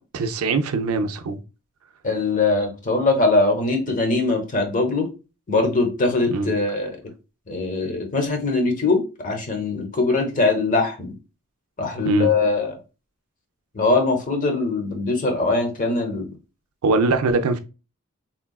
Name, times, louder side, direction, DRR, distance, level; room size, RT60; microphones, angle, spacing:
voice 1, 0.1-1.4 6.3-6.5 12.0-12.3 16.8-17.6, right 3 dB, 75° right, 0.4 m, -22 dB
voice 2, 2.0-5.1 5.5-7.0 7.5-11.1 11.8-12.8 13.7-16.3, left 3 dB, 35° left, 0.8 m, -22 dB
3.7 x 2.3 x 2.2 m
head